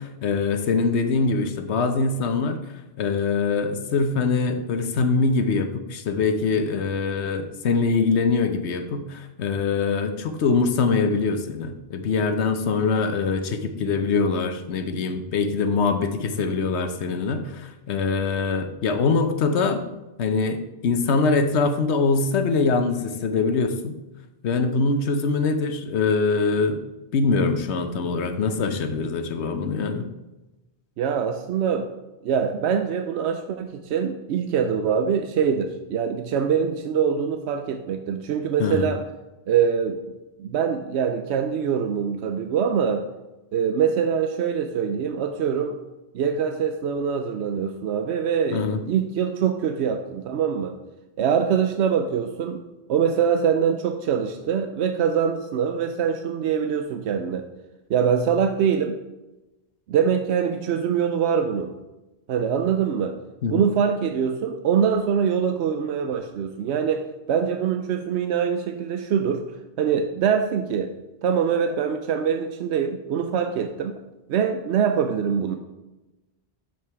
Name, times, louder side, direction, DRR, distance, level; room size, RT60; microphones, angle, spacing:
voice 1, 0.0-2.6 3.0-19.8 20.2-24.0 24.4-26.8 27.1-30.1 38.6-38.9 48.5-48.8 63.4-63.7, left 4 dB, 85° left, 8 dB, 1.0 m, -23 dB
voice 2, 31.0-31.9 32.2-39.0 39.5-40.0 40.4-43.1 43.5-45.8 46.1-50.8 51.2-52.6 52.9-57.5 57.9-59.0 59.9-61.7 62.3-63.1 63.5-69.4 69.8-70.9 71.2-74.0 74.3-75.6, right 7 dB, 90° right, 7 dB, 0.9 m, -24 dB
7.2 x 6.0 x 4.6 m, 1.0 s
omnidirectional pair, 1.1 m